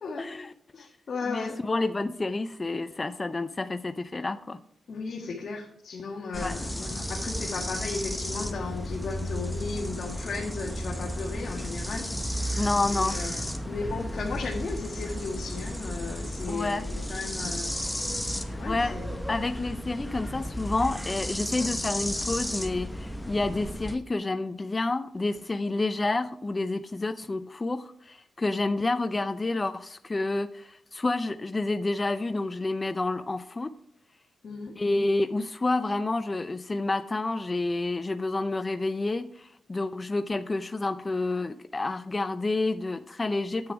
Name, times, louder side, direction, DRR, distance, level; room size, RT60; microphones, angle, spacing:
voice 1, 0.2-0.5 0.8-0.9 1.3-4.6 6.4-6.5 12.6-13.1 16.5-16.8 18.5-18.9 19.3-33.7 34.8-43.7, left 2 dB, 25° left, 10 dB, 0.5 m, -29 dB
voice 2, 0.7-1.6 4.9-12.5 12.9-17.7 18.6-19.2 34.4-34.7, left 4 dB, 55° left, -1 dB, 1.7 m, -35 dB
sound 1, 6.3-24.0, equal, 5° left, 1.0 m, -33 dB
9.6 x 7.9 x 4.6 m, 0.65 s
cardioid pair, 105°, 0 cm